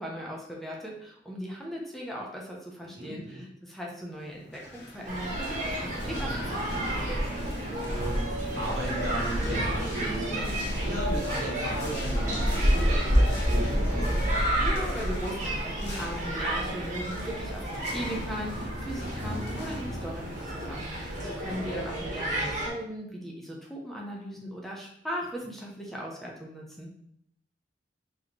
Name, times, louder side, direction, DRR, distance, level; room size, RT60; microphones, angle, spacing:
voice 1, 0.0-7.1 14.6-26.9, equal, ahead, -3 dB, 0.6 m, -38 dB
voice 2, 2.8-3.4 7.9-14.2 21.1-21.3, right 2 dB, 80° right, -5 dB, 1.5 m, -37 dB
sound 1, 4.3-21.8, equal, 65° left, 0.8 m, -40 dB
sound 2, 5.1-22.7, equal, 45° right, 1.3 m, -29 dB
4.0 x 3.1 x 3.0 m, 0.69 s
head